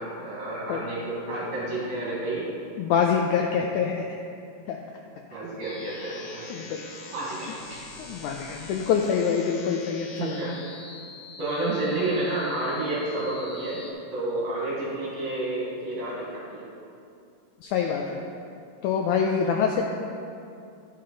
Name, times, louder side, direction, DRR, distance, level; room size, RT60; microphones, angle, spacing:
voice 1, 0.0-2.5 5.3-7.8 10.1-10.6 11.4-13.8 14.1-16.6 17.8-17.9, right 2 dB, 60° right, -7 dB, 2.4 m, -30 dB
voice 2, 2.8-4.0 4.7-4.8 6.5-6.8 8.0-10.5 17.6-18.2 18.8-19.8, left 7 dB, 90° left, 1 dB, 1.7 m, -25 dB
sound 1, 5.6-13.9, left 3 dB, 75° left, 1.7 m, -44 dB
12.0 x 5.6 x 3.8 m, 2.5 s
omnidirectional pair, 4.0 m